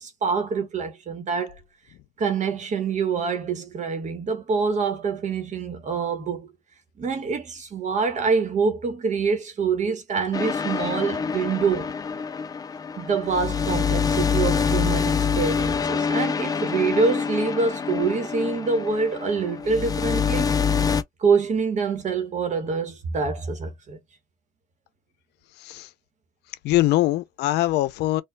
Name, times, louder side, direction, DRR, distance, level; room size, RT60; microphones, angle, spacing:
voice 1, 0.0-1.6 2.2-6.5 7.0-11.9 13.0-20.5 21.2-24.0, right 5 dB, 45° right, 1.2 m, -25 dB
sound 1, 10.3-21.0, left 6 dB, 20° left, 0.4 m, -25 dB
voice 2, 26.6-28.2, left 16 dB, 80° left, 0.5 m, -22 dB
4.4 x 2.4 x 2.2 m
cardioid pair, 110°, 17 cm